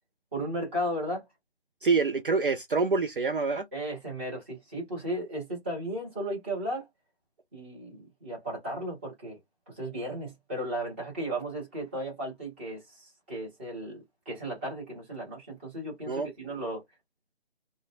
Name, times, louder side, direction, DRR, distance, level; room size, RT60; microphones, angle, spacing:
voice 1, 0.3-1.3 3.7-6.8 7.5-9.4 9.7-16.8, right 1 dB, 10° right, 0.9 m, -35 dB
voice 2, 1.8-3.7 16.1-16.3, right 4 dB, 55° right, 0.4 m, -26 dB
2.6 x 2.1 x 2.6 m
figure-of-eight pair, 160°, 33 cm